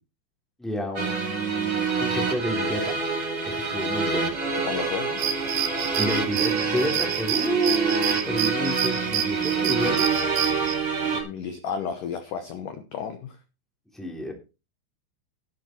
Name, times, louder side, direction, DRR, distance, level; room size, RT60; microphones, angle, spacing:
voice 1, 0.6-3.0 3.4-4.3 5.9-10.0 13.9-14.3, equal, ahead, 2 dB, 2.4 m, -30 dB
sound 1, 1.0-11.2, right 5 dB, 25° right, 4.8 m, -27 dB
voice 2, 4.7-5.2 11.1-13.4, left 7 dB, 75° left, 8 dB, 2.0 m, -33 dB
sound 2, 5.2-10.8, right 9 dB, 90° right, 3.9 m, -29 dB
11.5 x 10.5 x 4.5 m, 0.30 s
omnidirectional pair, 5.4 m